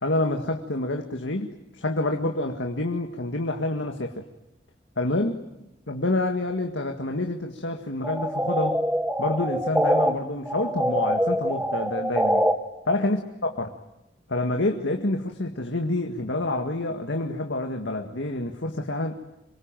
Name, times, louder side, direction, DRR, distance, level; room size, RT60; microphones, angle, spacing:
voice 1, 0.0-4.2 5.0-5.4 5.9-8.8 9.2-12.5 12.9-13.7 14.3-19.2, left 2 dB, 90° left, 3 dB, 2.0 m, -27 dB
sound 1, 8.0-10.1 10.5-12.5, equal, 5° right, 1.4 m, -24 dB
27.0 x 23.5 x 9.1 m, 0.89 s
head